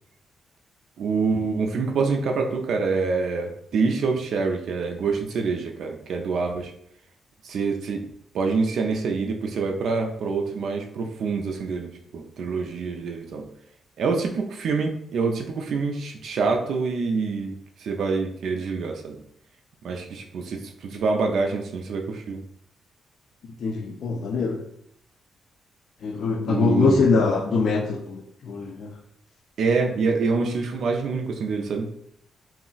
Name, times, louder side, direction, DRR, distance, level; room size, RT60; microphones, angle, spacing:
voice 1, 1.0-6.7 7.4-8.1 8.3-13.5 14.0-17.5 17.8-19.2 19.8-22.4 26.5-27.0 29.6-31.9, right 4 dB, 70° right, 0.3 m, -26 dB
voice 2, 23.6-24.6 26.0-29.0, left 4 dB, 60° left, 0.3 m, -23 dB
2.3 x 2.0 x 3.8 m
cardioid pair, 130°, 0 cm